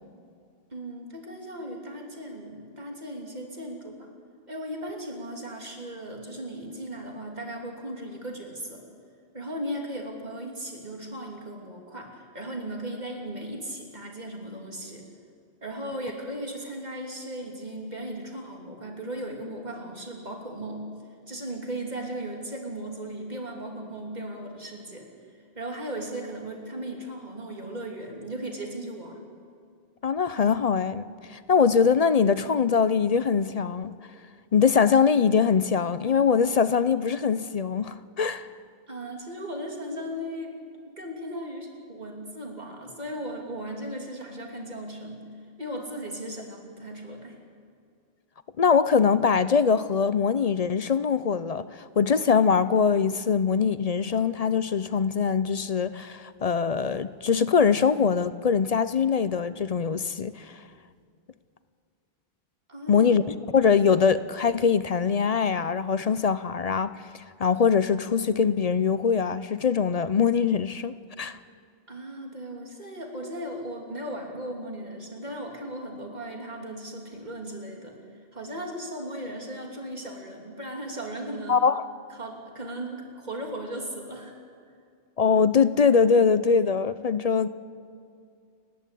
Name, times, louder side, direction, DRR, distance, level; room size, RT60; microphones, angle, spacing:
voice 1, 0.7-4.1 4.5-8.8 9.3-15.0 15.6-20.8 21.3-25.1 25.5-29.2 38.9-40.5 40.9-45.3 45.6-47.4 62.7-63.1 71.9-77.9 78.3-81.6 82.2-84.3, right 1 dB, 40° right, 3.2 m, -37 dB
voice 2, 30.0-33.9 34.5-38.5 48.6-60.6 62.9-71.4 81.5-81.8 85.2-87.5, left 6 dB, 45° left, 0.5 m, -23 dB
30.0 x 11.0 x 8.4 m
omnidirectional pair, 1.1 m